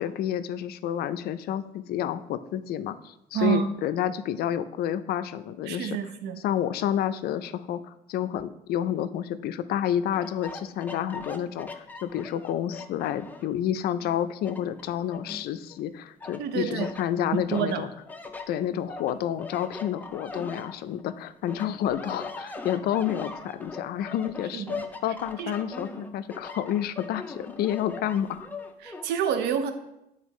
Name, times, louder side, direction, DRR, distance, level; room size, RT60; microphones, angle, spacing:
voice 1, 0.0-6.0 6.4-17.9 18.5-24.7 25.0-28.5, left 10 dB, 65° left, 12 dB, 0.4 m, -29 dB
voice 2, 3.3-3.7 5.7-6.4 16.4-16.9 17.5-17.8 24.5-24.8 25.4-25.5 28.8-29.7, right 8 dB, 80° right, 9 dB, 0.5 m, -28 dB
sound 1, 10.1-13.6 14.0-15.8 16.2-17.1 17.5-21.1 21.5-29.1, left 3 dB, 10° left, 0.5 m, -40 dB
8.9 x 3.9 x 3.1 m, 0.86 s
cardioid pair, 110°, 17 cm